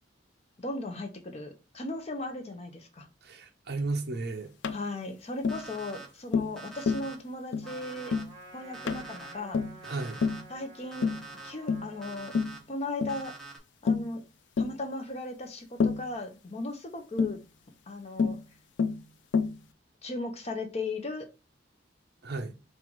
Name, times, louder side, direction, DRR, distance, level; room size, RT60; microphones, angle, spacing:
voice 1, 0.6-3.1 4.7-8.1 8.5-9.6 10.5-11.1 11.4-12.3 12.7-13.3 13.8-14.2 14.6-17.4 17.9-18.4 20.0-21.2, left 2 dB, 35° left, 0.7 m, -37 dB
voice 2, 3.2-4.5 9.8-10.2 22.2-22.5, right 3 dB, 60° right, 0.6 m, -34 dB
Tap, 4.6-4.8 5.4-5.6 6.3-6.6 6.9-7.1 7.5-7.7 8.1-8.3 8.9-9.1 9.5-9.8 10.2-10.5 11.0-11.3 11.7-11.9 12.3-12.6 13.0-13.2 13.9-14.1 14.6-14.8 15.8-16.1 17.2-17.4 18.2-18.4 18.8-19.0 19.3-19.6, left 5 dB, 70° left, 0.4 m, -28 dB
Alarm, 5.5-6.1 6.6-7.1 7.7-8.2 8.7-9.3 9.8-10.4 10.9-11.5 12.0-12.6 13.1-13.6, right 3 dB, ahead, 0.8 m, -45 dB
Trumpet, 7.6-12.3, right 2 dB, 25° right, 1.2 m, -50 dB
3.9 x 2.5 x 4.5 m
head